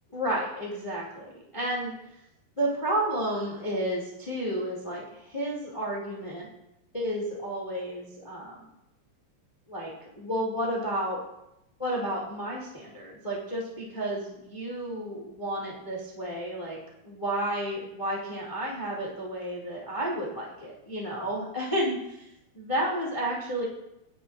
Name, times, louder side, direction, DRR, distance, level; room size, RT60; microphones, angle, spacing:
voice 1, 0.1-1.2 1.5-1.9 2.6-6.5 6.9-8.6 9.7-11.2 11.8-16.8 17.0-22.3 22.5-23.6, right 1 dB, 40° left, -4 dB, 0.4 m, -31 dB
17.0 x 9.9 x 2.6 m, 0.87 s
omnidirectional pair, 5.6 m